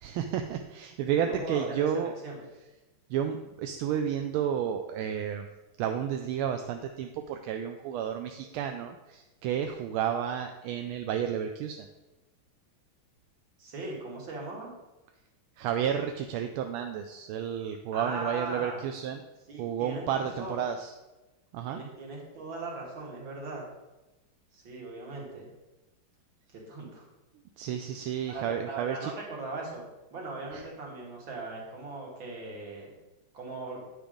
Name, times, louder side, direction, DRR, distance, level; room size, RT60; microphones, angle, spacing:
voice 1, 0.0-2.1 3.1-5.5 5.8-11.9 15.6-19.2 19.6-20.9 21.5-21.8 27.6-29.1 30.5-30.6, right 9 dB, 85° right, 5 dB, 1.4 m, -31 dB
voice 2, 1.2-2.4 13.6-14.7 17.9-18.9 19.5-20.8 21.7-23.7 24.5-25.5 26.5-27.1 28.2-29.8 30.1-32.9 33.3-33.8, right 2 dB, 70° right, -2 dB, 2.6 m, -39 dB
9.3 x 5.1 x 5.0 m, 1.1 s
omnidirectional pair, 2.3 m